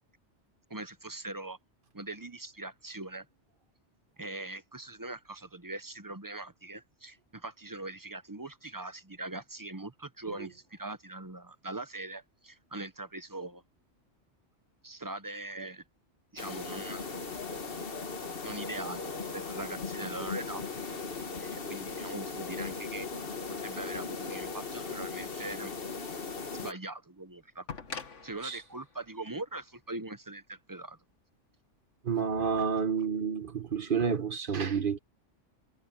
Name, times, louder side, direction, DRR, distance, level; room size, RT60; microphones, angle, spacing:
voice 1, 0.7-1.6 1.9-3.3 4.2-13.6 14.8-15.8 16.3-17.2 18.4-20.6 21.4-23.1 23.5-25.7 26.6-27.7 28.2-31.0, right 2 dB, 20° right, 0.7 m, -41 dB
sound 1, 16.4-26.7, left 4 dB, 50° left, 1.6 m, -38 dB
sound 2, 27.7-30.5 31.7-31.8, left 5 dB, 80° left, 2.0 m, -45 dB
voice 2, 32.0-35.0, right 6 dB, 45° right, 1.3 m, -29 dB
omnidirectional pair, 1.2 m